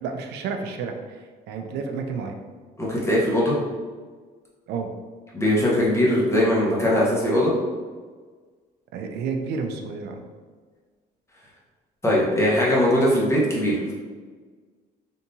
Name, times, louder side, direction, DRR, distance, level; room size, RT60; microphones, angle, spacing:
voice 1, 0.0-1.2 1.5-2.4 4.7-4.9 8.9-10.2, right 5 dB, 75° right, 4 dB, 0.4 m, -30 dB
voice 2, 2.8-3.6 5.3-7.5 12.0-13.9, left 1 dB, 15° left, -5 dB, 1.0 m, -20 dB
3.5 x 2.8 x 2.7 m, 1.5 s
cardioid pair, 110°, 17 cm